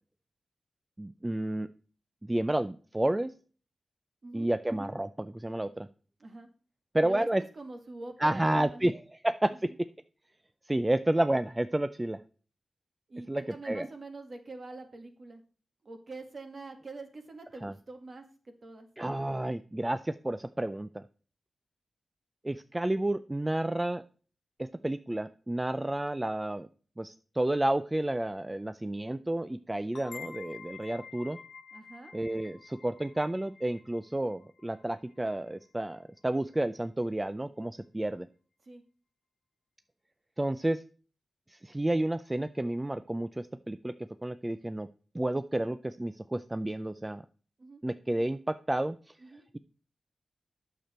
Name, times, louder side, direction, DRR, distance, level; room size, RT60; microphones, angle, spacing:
voice 1, 1.0-1.7 2.2-3.3 4.3-5.9 6.9-7.4 8.2-9.7 10.7-12.2 13.3-13.9 17.6-17.7 19.0-21.0 22.4-24.0 24.6-26.7 27.0-31.4 32.1-38.3 40.4-40.8 41.5-43.9 44.2-44.9 45.1-47.2 47.8-49.0, right 1 dB, 15° right, 12 dB, 0.4 m, -31 dB
voice 2, 7.5-8.8 9.5-9.8 13.1-15.4 15.8-18.9 31.7-32.1 38.6-38.8 47.6-47.8 49.2-49.4, right 3 dB, 45° right, 5 dB, 2.0 m, -45 dB
sound 1, 29.9-35.4, left 6 dB, 70° left, 1.3 m, -49 dB
9.1 x 6.9 x 4.3 m, 0.39 s
wide cardioid pair, 115°, 0 cm